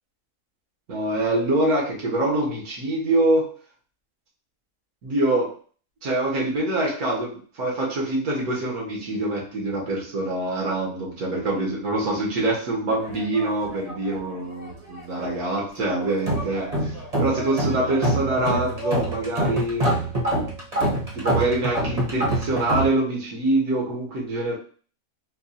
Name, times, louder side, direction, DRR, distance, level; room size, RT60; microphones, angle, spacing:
voice 1, 0.9-3.5 5.0-5.5 6.0-16.7 17.2-19.9 21.1-24.5, right 2 dB, 80° right, -3 dB, 1.8 m, -25 dB
sound 1, 13.0-14.3 14.6-15.4 15.8-22.9, right 1 dB, 30° right, 0.9 m, -26 dB
4.5 x 2.3 x 2.7 m, 0.41 s
omnidirectional pair, 1.6 m